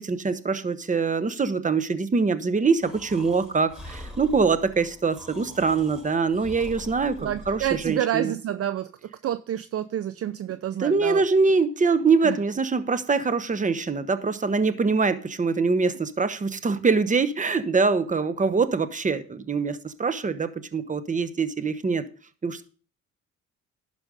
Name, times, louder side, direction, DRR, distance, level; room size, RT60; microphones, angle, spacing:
voice 1, 0.0-8.3 10.8-22.0 22.4-22.6, right 4 dB, 25° right, 1.0 m, -24 dB
Breathing, 2.8-7.9, left 1 dB, 5° right, 4.1 m, -43 dB
voice 2, 7.2-11.2 12.2-12.4, right 11 dB, 50° right, 0.5 m, -29 dB
11.5 x 5.2 x 5.1 m
cardioid pair, 90°, 30 cm